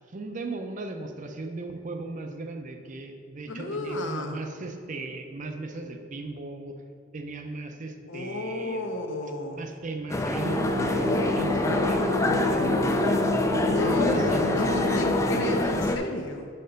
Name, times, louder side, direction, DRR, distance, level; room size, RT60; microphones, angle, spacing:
voice 1, 0.1-6.8 7.1-8.9 9.5-13.2 13.7-14.6, right 3 dB, 40° right, 5 dB, 0.5 m, -37 dB
voice 2, 3.5-4.4 8.1-9.7 13.6-16.5, left 2 dB, 65° left, 4 dB, 0.7 m, -33 dB
sound 1, 10.1-16.0, left 2 dB, 15° left, 0.3 m, -26 dB
sound 2, 10.4-15.6, left 1 dB, 90° right, 1.6 m, -28 dB
6.6 x 4.3 x 5.1 m, 2.3 s
head